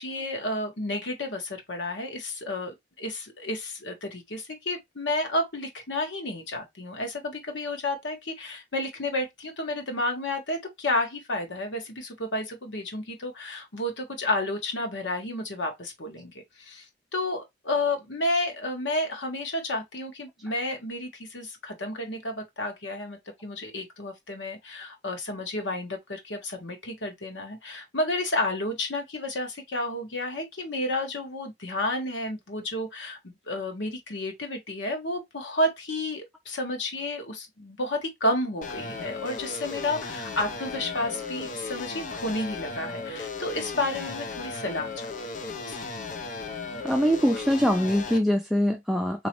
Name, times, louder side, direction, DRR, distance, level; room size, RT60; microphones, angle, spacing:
voice 1, 0.0-16.9 17.1-45.1 45.4-45.8, left 1 dB, 85° left, 1.4 m, -31 dB
sound 1, 38.6-48.2, left 3 dB, 45° left, 0.6 m, -36 dB
voice 2, 46.8-49.3, equal, ahead, 0.4 m, -23 dB
4.1 x 3.0 x 2.9 m
head